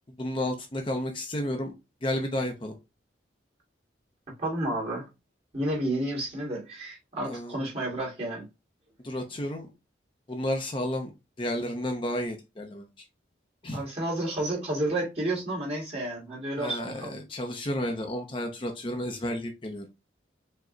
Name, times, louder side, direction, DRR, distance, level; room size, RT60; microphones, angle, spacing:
voice 1, 0.2-1.7 2.0-2.8 7.2-7.6 9.0-9.7 10.3-11.1 11.4-12.9 13.6-13.8 16.6-19.9, left 1 dB, 25° left, 0.5 m, -32 dB
voice 2, 4.4-5.1 5.5-8.4 13.7-17.2, right 1 dB, 30° right, 2.0 m, -31 dB
4.9 x 2.1 x 3.8 m
head